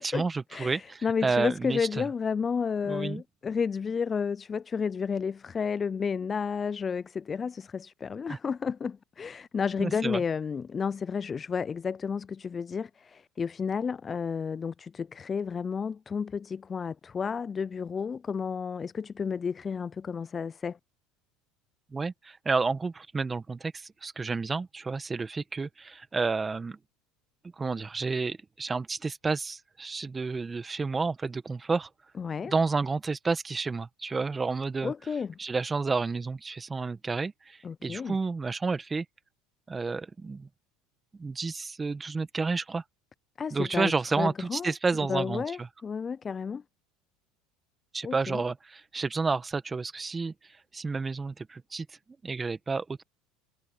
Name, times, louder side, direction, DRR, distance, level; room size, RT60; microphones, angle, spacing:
voice 1, 0.0-2.0 2.8-3.2 8.3-8.4 9.8-10.2 21.9-26.8 27.6-31.9 32.4-34.9 35.4-39.0 39.7-40.5 41.2-42.8 43.5-45.7 47.9-50.3 50.7-51.9 52.2-53.0, right 4 dB, 20° right, 1.6 m, -30 dB
voice 2, 0.5-20.8 32.2-32.5 34.8-35.4 37.6-38.2 43.4-44.7 45.1-46.6 48.0-48.4, left 6 dB, 30° left, 0.4 m, -31 dB
hypercardioid pair, 90°, 0 cm